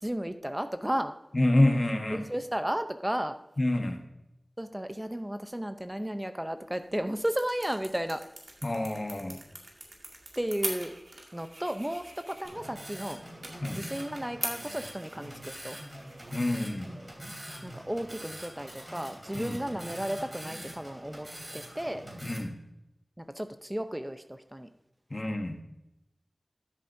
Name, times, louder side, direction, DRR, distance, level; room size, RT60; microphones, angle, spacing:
voice 1, 0.0-1.1 2.1-3.4 4.6-8.2 10.4-11.0 11.3-13.2 13.7-15.8 17.6-21.3 21.5-22.0 23.3-24.7, equal, 15° right, 8 dB, 0.6 m, -33 dB
voice 2, 1.3-2.2 3.6-4.0 8.6-9.4 13.6-13.8 16.3-16.9 19.3-19.6 22.2-22.5 25.1-25.6, left 1 dB, 45° left, 5 dB, 1.2 m, -27 dB
sound 1, 6.6-18.1, right 2 dB, 75° right, 2.0 m, -44 dB
sound 2, 12.4-22.4, equal, 35° right, 3.0 m, -44 dB
13.0 x 7.4 x 2.7 m, 0.89 s
wide cardioid pair, 45°, 0 cm